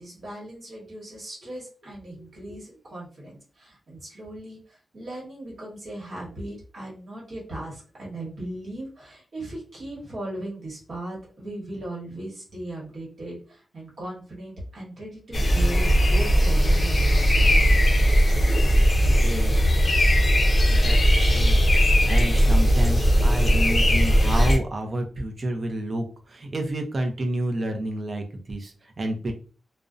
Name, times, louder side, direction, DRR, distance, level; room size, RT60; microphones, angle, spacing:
voice 1, 0.0-17.9, right 1 dB, 60° right, -4 dB, 1.1 m, -38 dB
sound 1, 15.3-24.6, equal, 35° left, 0.5 m, -19 dB
voice 2, 19.0-19.9 20.7-21.6 22.1-29.3, right 1 dB, 40° right, 4 dB, 0.5 m, -29 dB
2.5 x 2.0 x 2.4 m, 0.38 s
wide cardioid pair, 130°, 0 cm